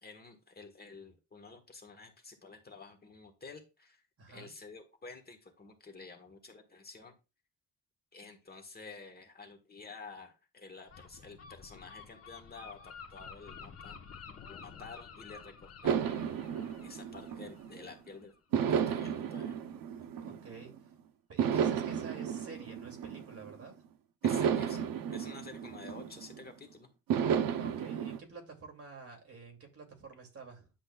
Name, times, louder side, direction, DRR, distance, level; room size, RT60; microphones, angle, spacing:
voice 1, 0.0-4.0 4.3-7.2 8.1-14.0 14.5-16.2 16.8-19.5 21.5-21.8 24.2-26.9, left 4 dB, 25° left, 1.4 m, -50 dB
voice 2, 4.2-4.5 14.6-14.9 20.1-20.7 21.3-23.8 27.6-30.7, right 4 dB, 40° right, 2.6 m, -50 dB
Gull seagull, 10.9-18.4, left 6 dB, 45° left, 1.2 m, -51 dB
sound 1, 15.8-17.9 18.5-20.8 21.4-23.6 24.2-26.5 27.1-28.2, right 8 dB, 75° right, 0.8 m, -33 dB
10.5 x 7.5 x 2.4 m
cardioid pair, 155°, 34 cm